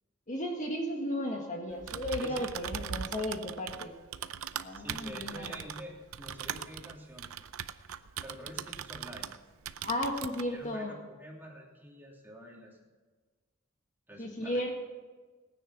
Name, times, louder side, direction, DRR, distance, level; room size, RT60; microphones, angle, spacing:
voice 1, 0.3-3.9 4.5-5.6 9.8-10.9 14.2-14.7, left 1 dB, 35° left, 2 dB, 1.7 m, -34 dB
Typing, 1.7-9.4 9.7-10.5, right 8 dB, 90° right, 0.6 m, -40 dB
voice 2, 4.7-7.3 8.2-9.3 10.5-12.8 14.1-14.7, equal, 10° right, -2 dB, 2.9 m, -47 dB
18.5 x 10.0 x 6.0 m, 1.4 s
head